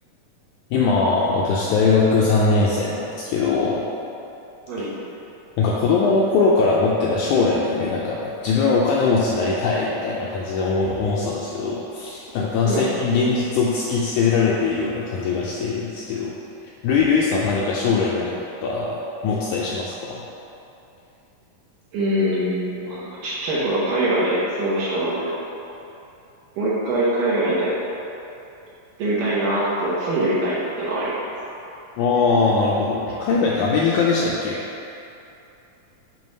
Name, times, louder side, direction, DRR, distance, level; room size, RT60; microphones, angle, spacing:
voice 1, 0.7-3.8 5.6-16.3 16.8-18.3 18.6-20.2 32.0-34.6, left 4 dB, 85° left, -4 dB, 1.7 m, -21 dB
voice 2, 21.9-25.3 26.6-27.7 29.0-31.2, right 1 dB, 70° right, -9 dB, 2.5 m, -23 dB
7.1 x 3.1 x 5.3 m, 2.8 s
omnidirectional pair, 3.9 m